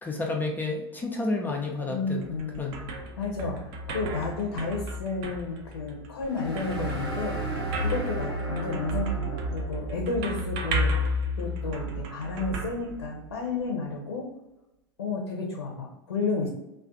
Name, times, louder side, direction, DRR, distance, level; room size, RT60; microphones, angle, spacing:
voice 1, 0.0-2.3 2.6-2.8, left 3 dB, 15° left, 0 dB, 0.4 m, -30 dB
voice 2, 1.8-7.4 7.8-11.0 11.4-14.3 15.0-16.5, left 4 dB, 80° left, 0 dB, 0.6 m, -32 dB
sound 1, 2.1-13.6, equal, 50° right, 0.5 m, -33 dB
sound 2, 6.2-10.0, right 3 dB, 80° right, 0.9 m, -33 dB
2.4 x 2.4 x 3.7 m, 0.94 s
figure-of-eight pair, 85°, 13 cm